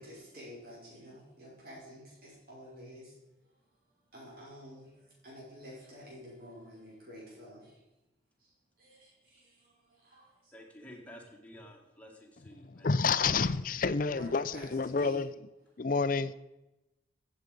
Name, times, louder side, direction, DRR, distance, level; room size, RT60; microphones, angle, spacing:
voice 1, 0.0-3.8 4.1-7.8 8.4-10.5 14.0-15.2 15.7-15.8, equal, 55° right, 5.7 m, -51 dB
voice 2, 10.5-13.3, equal, 10° left, 2.0 m, -52 dB
voice 3, 12.8-15.3 15.8-16.3, left 4 dB, 45° left, 0.5 m, -29 dB
15.0 x 7.8 x 5.2 m
head